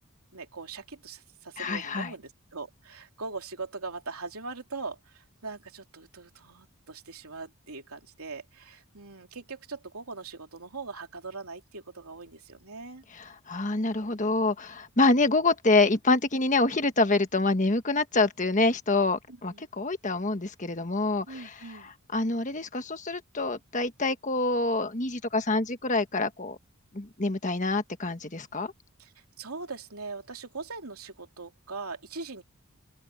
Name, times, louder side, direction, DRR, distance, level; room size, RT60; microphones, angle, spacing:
voice 1, 0.3-13.0 19.3-19.6 21.3-21.9 29.0-32.4, right 4 dB, 80° right, 3.0 m, -41 dB
voice 2, 1.6-2.1 13.1-26.6 26.9-28.7, left 3 dB, 35° left, 1.4 m, -26 dB
open air
head